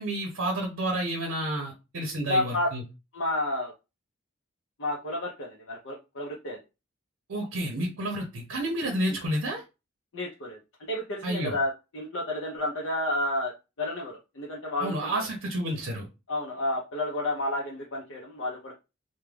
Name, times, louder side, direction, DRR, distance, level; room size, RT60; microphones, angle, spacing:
voice 1, 0.0-2.8 7.3-9.6 11.2-11.6 14.8-16.1, right 1 dB, 70° right, 1 dB, 0.6 m, -30 dB
voice 2, 2.3-2.7 3.1-3.7 4.8-6.6 10.1-10.6 10.9-13.5 13.8-15.1 16.3-18.7, left 1 dB, 65° left, -3 dB, 0.6 m, -30 dB
2.3 x 2.1 x 3.2 m, 0.27 s
head